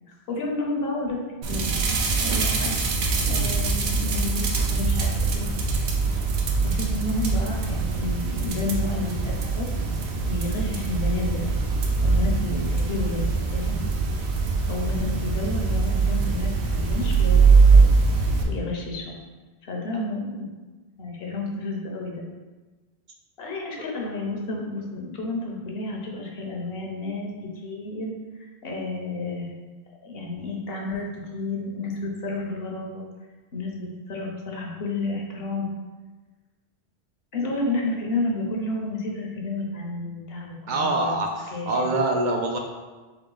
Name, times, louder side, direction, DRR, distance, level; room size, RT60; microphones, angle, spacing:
voice 1, 0.3-1.2 1.5-1.7 2.2-2.8 3.3-5.5 6.6-9.7 10.2-11.4 12.0-13.2 13.5-13.8 14.7-17.8 18.4-19.2 19.6-20.5 21.0-22.2 23.4-27.3 27.6-28.1 28.6-29.5 30.0-31.1 31.3-33.0 33.5-35.7 37.3-41.2 41.5-41.9, left 2 dB, 70° left, -1 dB, 1.0 m, -31 dB
sound 1, 1.4-18.4, right 4 dB, 85° right, 0.9 m, -22 dB
voice 2, 40.7-42.6, right 2 dB, 60° right, 2 dB, 0.6 m, -25 dB
3.7 x 3.5 x 3.8 m, 1.3 s
omnidirectional pair, 1.1 m